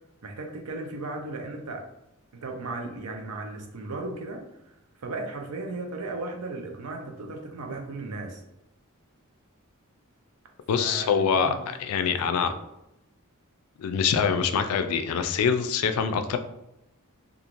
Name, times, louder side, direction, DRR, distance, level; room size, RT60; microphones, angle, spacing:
voice 1, 0.2-1.9 2.3-8.4 10.7-11.6 11.9-12.6, right 2 dB, 85° right, 3 dB, 0.5 m, -36 dB
voice 2, 10.7-11.5 11.9-12.5 13.8-16.4, left 6 dB, 75° left, 8 dB, 0.3 m, -24 dB
2.9 x 2.4 x 2.5 m, 0.86 s
head